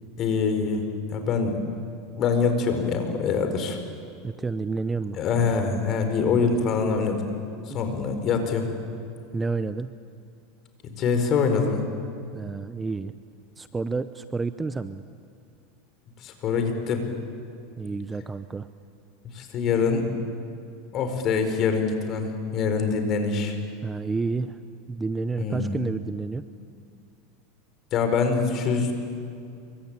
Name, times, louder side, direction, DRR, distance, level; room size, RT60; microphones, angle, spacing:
voice 1, 0.2-0.8 1.1-1.6 2.2-3.8 5.2-7.4 7.7-8.7 10.8-11.9 16.2-17.0 19.3-20.1 20.9-23.6 25.4-25.7 27.9-28.9, left 5 dB, 40° left, 6 dB, 4.5 m, -24 dB
voice 2, 4.2-5.2 9.3-9.9 12.3-13.1 13.6-15.0 17.8-18.7 23.8-24.6 24.9-26.4, right 4 dB, 15° right, 12 dB, 0.7 m, -30 dB
27.5 x 24.0 x 9.0 m, 2.5 s
supercardioid pair, 140°, 0 cm